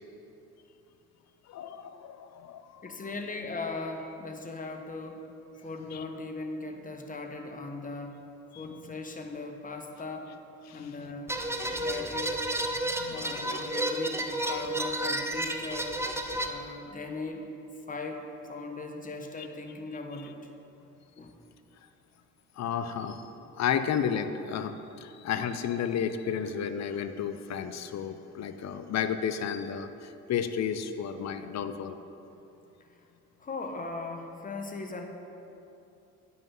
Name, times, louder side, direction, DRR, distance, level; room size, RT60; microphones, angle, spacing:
voice 1, 1.5-2.8 5.9-6.0 8.5-8.9 10.7-11.1 11.8-11.9 12.9-13.5 19.4-19.5 22.6-23.2 23.5-32.0, left 8 dB, 60° left, 10 dB, 0.6 m, -33 dB
voice 2, 2.8-5.3 5.6-8.2 8.5-10.3 10.7-11.4 11.7-12.5 13.1-15.9 16.4-17.5 17.9-20.4 21.2-21.3 33.4-35.1, left 3 dB, 25° left, 4 dB, 1.1 m, -38 dB
sound 1, 11.3-16.5, right 1 dB, 10° right, 0.6 m, -31 dB
9.3 x 5.7 x 5.5 m, 2.8 s
cardioid pair, 90°, 30 cm